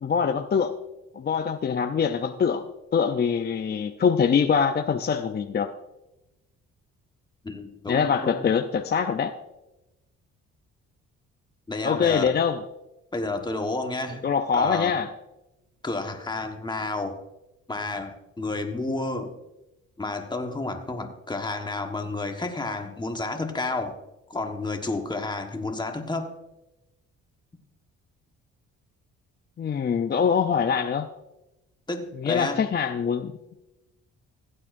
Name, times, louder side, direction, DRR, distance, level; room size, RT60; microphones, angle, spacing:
voice 1, 0.0-0.7 1.1-2.7 2.9-5.7 7.9-9.3 11.8-12.6 14.2-15.1 29.6-31.1 32.2-33.3, left 6 dB, 35° left, 6 dB, 0.5 m, -24 dB
voice 2, 7.4-8.4 11.7-12.3 13.1-14.2 14.5-14.9 15.8-17.2 17.7-19.3 20.0-24.0 24.3-26.4 31.9-32.6, left 2 dB, 15° left, 4 dB, 1.3 m, -30 dB
16.0 x 8.8 x 2.6 m, 0.94 s
cardioid pair, 90°, 30 cm